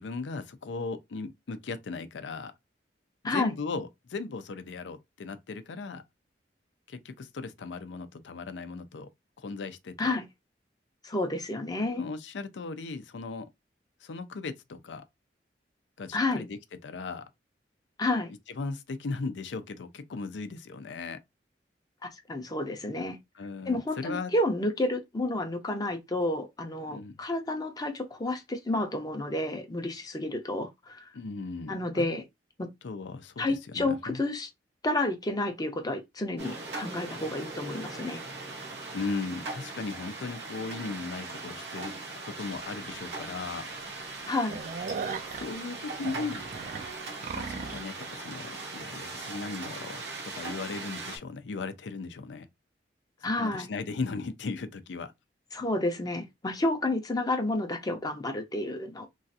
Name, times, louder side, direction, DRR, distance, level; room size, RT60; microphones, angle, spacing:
voice 1, 0.0-2.5 3.2-6.0 6.9-9.1 9.4-10.2 11.8-13.5 14.0-15.1 16.0-16.6 16.8-17.3 18.6-21.2 23.4-24.3 26.9-27.1 31.1-32.1 32.8-34.2 38.9-42.0 42.2-43.7 45.3-46.5 47.3-52.5 53.4-55.1, left 4 dB, 90° left, 0.5 m, -37 dB
voice 2, 11.0-12.0 16.1-16.4 18.0-18.3 22.3-23.2 23.7-31.1 31.7-32.2 32.6-32.7 33.4-34.5 34.8-38.2 44.3-44.6 53.2-53.7 55.5-59.1, left 2 dB, 20° left, 0.6 m, -30 dB
sound 1, 36.4-51.2, right 3 dB, 75° right, 0.9 m, -40 dB
sound 2, 42.6-42.7 43.2-43.3 43.6-43.8 44.1-47.9, right 5 dB, 45° right, 0.3 m, -38 dB
3.1 x 2.4 x 2.7 m
head